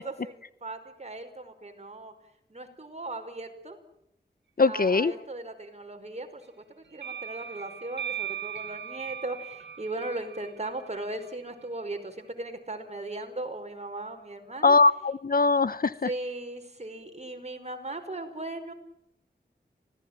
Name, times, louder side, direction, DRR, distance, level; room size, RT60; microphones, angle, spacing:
voice 1, 0.0-2.1 2.5-3.8 4.6-6.4 6.7-14.8 16.0-18.7, right 2 dB, 40° right, 5 dB, 5.1 m, -38 dB
voice 2, 4.6-5.1 14.6-16.1, left 3 dB, 55° left, 16 dB, 1.0 m, -21 dB
sound 1, 7.0-11.4, right 9 dB, 90° right, 2.3 m, -39 dB
26.0 x 18.5 x 9.0 m, 0.77 s
wide cardioid pair, 85°, 18 cm